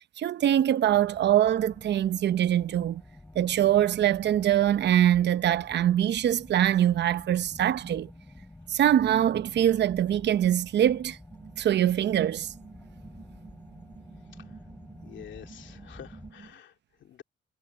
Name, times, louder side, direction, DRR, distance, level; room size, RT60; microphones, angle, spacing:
voice 1, 0.0-3.0 3.3-8.1 8.7-11.2 11.6-12.5, right 11 dB, 60° right, 0.8 m, -23 dB
sound 1, 0.9-16.3, left 1 dB, 10° left, 5.2 m, -50 dB
sound 2, 11.3-16.5, right 5 dB, 40° right, 4.8 m, -50 dB
voice 2, 15.0-16.7 17.0-17.2, left 10 dB, 70° left, 2.8 m, -48 dB
cardioid pair, 90°, 20 cm